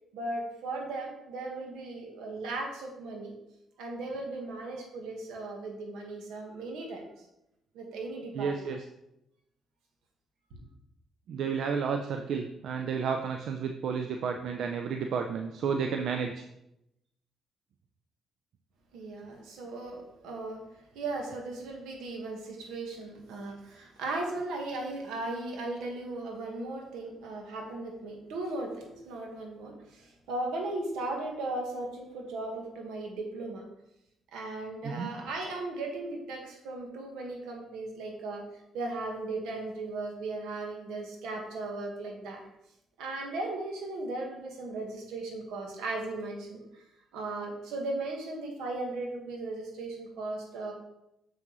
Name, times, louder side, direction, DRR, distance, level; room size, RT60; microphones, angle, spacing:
voice 1, 0.1-3.3 3.8-7.0 7.7-8.6 18.9-20.6 20.9-33.6 34.3-38.4 38.7-42.4 43.0-46.6 47.1-50.7, right 2 dB, 90° right, 1 dB, 1.5 m, -37 dB
voice 2, 8.3-8.8 11.3-16.5 34.8-35.1, right 6 dB, 70° right, 5 dB, 0.5 m, -31 dB
6.8 x 6.0 x 3.1 m, 0.85 s
cardioid pair, 90°, 0 cm